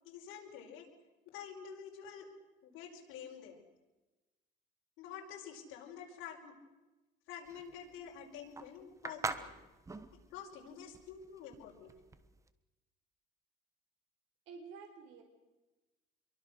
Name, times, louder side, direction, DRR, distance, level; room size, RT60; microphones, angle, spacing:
voice 1, 0.1-0.9 1.3-2.3 2.6-3.6 5.0-6.6 7.3-9.5 10.3-11.9, left 8 dB, 80° left, 1 dB, 5.5 m, -48 dB
sound 1, 7.4-12.5, right 3 dB, 15° right, 1.2 m, -43 dB
voice 2, 14.5-15.2, right 5 dB, 80° right, 3 dB, 4.2 m, -50 dB
27.5 x 23.0 x 6.5 m, 1.1 s
cardioid pair, 145°, 20 cm